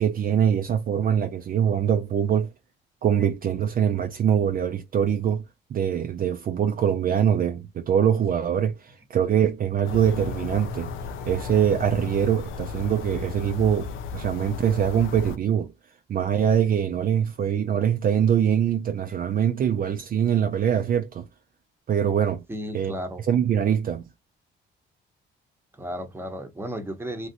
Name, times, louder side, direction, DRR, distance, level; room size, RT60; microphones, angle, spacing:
voice 1, 0.0-2.5 3.0-5.4 5.7-10.9 11.3-15.7 16.1-21.3 21.9-22.4 22.7-22.9 23.3-24.0, right 8 dB, 45° right, 0.4 m, -23 dB
sound 1, 9.8-15.4, left 5 dB, 85° left, 0.5 m, -34 dB
voice 2, 22.5-23.2 25.8-27.3, equal, 10° right, 0.9 m, -34 dB
3.0 x 2.5 x 2.7 m
cardioid pair, 90°, 20 cm